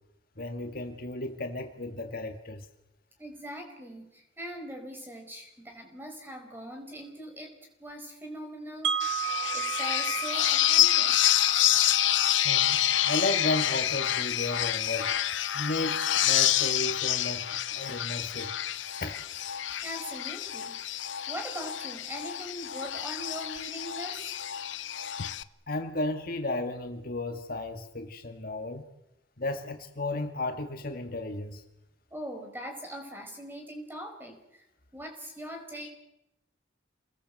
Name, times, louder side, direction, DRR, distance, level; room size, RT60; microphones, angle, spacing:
voice 1, 0.4-2.7 12.4-15.1 15.5-18.5 19.0-19.2 25.7-28.8 29.4-31.6, left 2 dB, 50° left, 5 dB, 2.0 m, -34 dB
voice 2, 3.2-7.5 7.8-9.2 9.5-11.2 19.8-20.8 21.3-24.4 32.1-34.6 34.9-35.9, equal, 10° right, 3 dB, 5.1 m, -41 dB
Wind chime, 8.8-14.8, right 10 dB, 80° right, 1.0 m, -35 dB
sound 1, 9.0-25.4, left 12 dB, 80° left, 0.8 m, -28 dB
28.5 x 20.5 x 7.8 m, 0.87 s
head